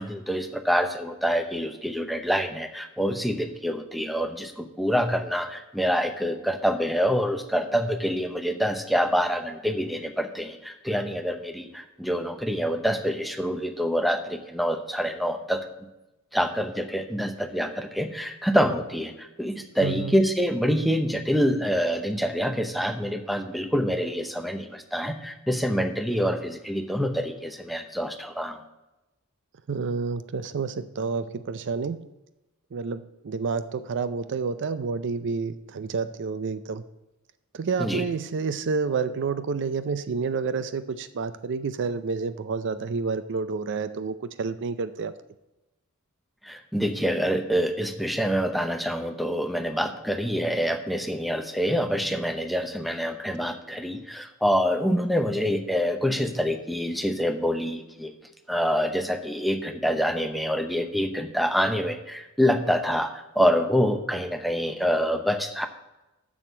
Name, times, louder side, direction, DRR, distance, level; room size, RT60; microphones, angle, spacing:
voice 1, 0.0-15.6 16.3-28.6 37.8-38.0 46.4-58.1 58.5-65.7, equal, ahead, 7 dB, 0.7 m, -26 dB
voice 2, 19.8-20.2 29.7-32.1 32.7-36.8 37.5-45.1, right 5 dB, 55° right, 13 dB, 0.5 m, -29 dB
7.5 x 6.4 x 6.9 m, 0.98 s
head